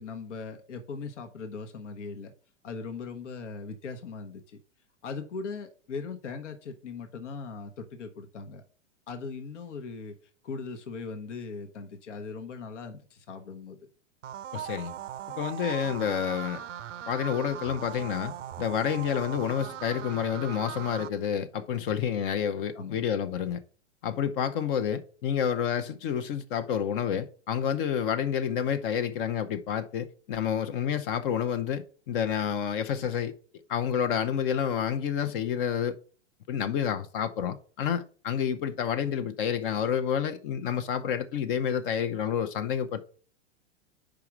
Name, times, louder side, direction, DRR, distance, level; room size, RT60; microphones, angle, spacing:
voice 1, 0.0-2.3 2.6-4.6 5.0-8.6 9.1-10.2 10.4-13.9 22.7-23.0, left 4 dB, 75° left, 1.1 m, -39 dB
sound 1, 14.2-21.1, right 10 dB, 80° right, 0.5 m, -39 dB
voice 2, 14.5-14.9 15.4-16.6 17.1-23.6 24.0-33.3 33.7-36.0 36.5-43.0, left 8 dB, 45° left, 0.7 m, -29 dB
5.1 x 4.7 x 5.9 m
hypercardioid pair, 110°, 36 cm